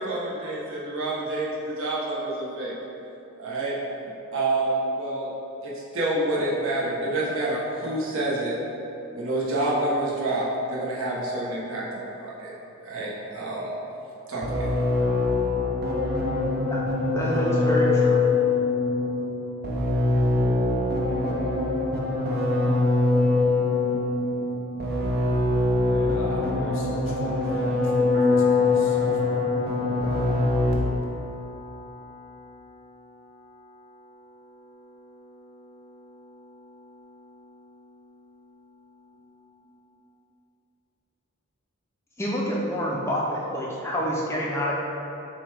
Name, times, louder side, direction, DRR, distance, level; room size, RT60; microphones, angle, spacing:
voice 1, 0.0-2.7 3.4-3.8 4.3-5.3 5.6-8.5 9.1-12.5 12.8-13.7 14.3-14.7, right 2 dB, 65° right, -6 dB, 0.9 m, -28 dB
sound 1, 14.4-31.1, left 3 dB, 45° right, 0.5 m, -23 dB
voice 2, 17.1-18.3 42.2-44.7, equal, 10° left, -5 dB, 0.4 m, -27 dB
voice 3, 25.8-29.4, left 1 dB, 60° left, -2 dB, 0.7 m, -39 dB
Piano, 28.1-38.5, left 3 dB, 90° right, 1.1 m, -36 dB
6.6 x 2.3 x 3.3 m, 3.0 s
head